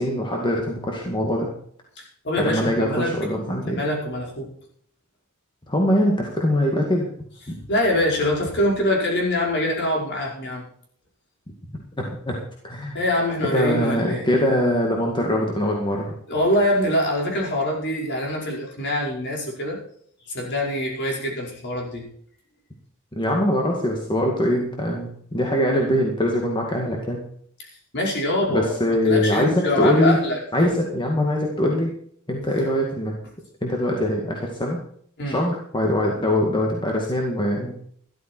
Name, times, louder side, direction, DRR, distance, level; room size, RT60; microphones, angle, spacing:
voice 1, 0.0-1.5 2.4-3.8 5.7-7.1 7.5-7.6 12.0-12.4 12.6-13.0 13.5-16.1 23.2-27.2 28.5-30.2 30.5-31.9 32.3-33.1 33.6-34.8 35.3-37.7, left 1 dB, 20° left, 0 dB, 2.1 m, -22 dB
voice 2, 2.0-3.1 3.5-4.5 7.7-10.6 12.9-14.3 16.3-19.8 20.2-22.1 27.6-30.4 35.2-35.4, left 1 dB, 55° left, -1 dB, 5.0 m, -24 dB
13.0 x 13.0 x 4.5 m, 0.63 s
head